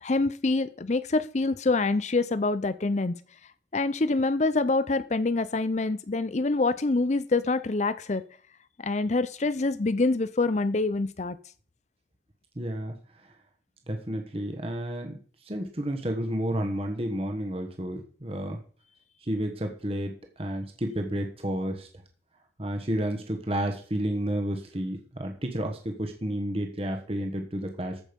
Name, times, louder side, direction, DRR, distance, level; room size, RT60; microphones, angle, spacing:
voice 1, 0.0-3.2 3.7-8.2 8.8-11.4, left 3 dB, 40° left, 14 dB, 0.5 m, -26 dB
voice 2, 12.6-12.9 13.9-15.2 15.4-18.6 19.2-21.9 22.6-28.0, right 1 dB, 30° right, 4 dB, 1.3 m, -31 dB
14.5 x 6.5 x 5.3 m, 0.44 s
head